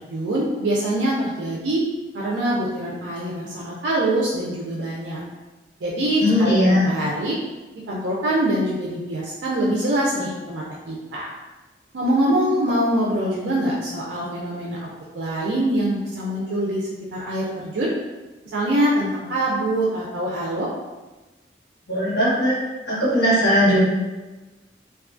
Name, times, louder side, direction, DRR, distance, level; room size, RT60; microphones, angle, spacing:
voice 1, 0.1-1.8 2.1-5.2 5.8-7.4 7.9-11.3 11.9-14.8 15.1-17.9 18.5-20.7, right 1 dB, 85° right, -5 dB, 0.4 m, -24 dB
voice 2, 6.2-6.9 21.9-22.5 22.9-23.8, equal, 60° left, -13 dB, 1.2 m, -18 dB
2.6 x 2.3 x 2.4 m, 1.2 s
head